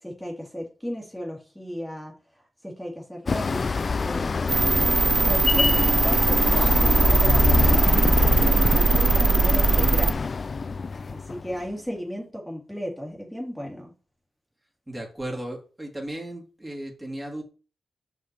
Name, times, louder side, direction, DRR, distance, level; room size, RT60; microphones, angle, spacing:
voice 1, 0.0-2.1 2.6-4.9 5.2-10.2 11.1-13.9, equal, 5° left, -1 dB, 2.2 m, -35 dB
sound 1, 3.3-11.6, left 4 dB, 50° left, 0.3 m, -25 dB
sound 2, 4.5-10.1, right 4 dB, 50° right, 0.3 m, -20 dB
voice 2, 14.9-17.4, right 1 dB, 15° right, 1 dB, 2.5 m, -35 dB
5.7 x 5.5 x 4.4 m, 0.35 s
cardioid pair, 55°, 0 cm